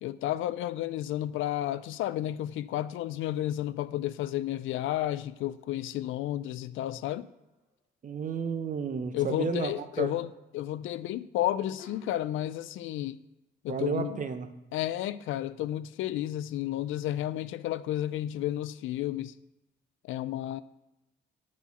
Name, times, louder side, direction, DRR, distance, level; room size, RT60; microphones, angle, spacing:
voice 1, 0.0-7.3 9.1-10.3 10.5-13.2 13.6-14.1 14.7-19.3 20.1-20.6, left 13 dB, 80° left, 0.4 m, -32 dB
sound 1, 7.2-7.8 11.8-12.7, left 4 dB, 20° right, 1.9 m, -54 dB
voice 2, 8.0-10.2 13.7-14.5, right 6 dB, 40° right, 0.8 m, -32 dB
8.2 x 4.3 x 7.0 m
cardioid pair, 90°, 20 cm